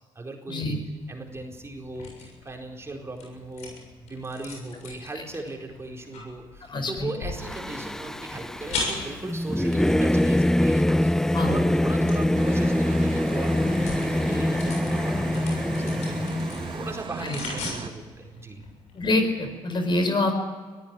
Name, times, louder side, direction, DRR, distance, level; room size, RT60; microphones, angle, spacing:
voice 1, 0.1-0.8 1.1-3.7 4.0-18.6, right 2 dB, 20° right, 1 dB, 4.5 m, -38 dB
sound 1, 0.9-19.5, left 3 dB, 70° left, 7.0 m, -40 dB
voice 2, 6.7-7.1 11.3-11.6 15.0-15.1 17.2-17.4 18.9-20.3, left 2 dB, 40° left, 6 dB, 4.9 m, -26 dB
Singing / Musical instrument, 7.4-17.0, left 1 dB, 5° left, 0.6 m, -24 dB
sound 2, 12.4-17.9, right 7 dB, 45° right, 1.4 m, -37 dB
22.5 x 14.5 x 9.1 m, 1.5 s
supercardioid pair, 70°, 12 cm